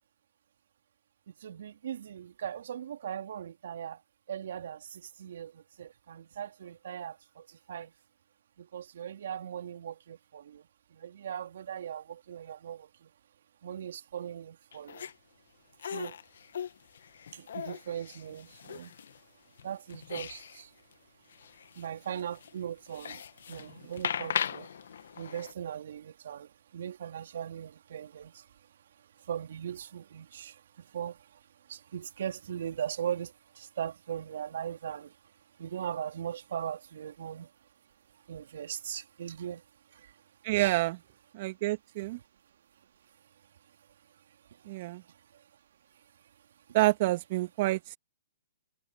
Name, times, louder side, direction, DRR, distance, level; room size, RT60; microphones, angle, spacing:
voice 1, 1.3-4.0 4.3-7.9 8.6-13.1 13.6-15.1 15.8-16.2 17.3-18.9 19.6-20.7 21.7-24.7 25.2-28.5 29.2-31.4 31.7-35.2 35.6-37.5 38.3-39.6 39.9-40.1 40.6-40.8 44.5-45.4, right 9 dB, 65° right, 2.7 m, -39 dB
sound 1, 14.7-15.1 15.8-19.2 19.6-20.6 20.9-21.0 21.3-25.5, left 8 dB, 65° left, 1.8 m, -39 dB
voice 2, 40.4-41.0 41.3-42.2 44.7-45.0 46.7-48.0, right 19 dB, 45° right, 2.9 m, -28 dB
open air
hypercardioid pair, 125°, 0 cm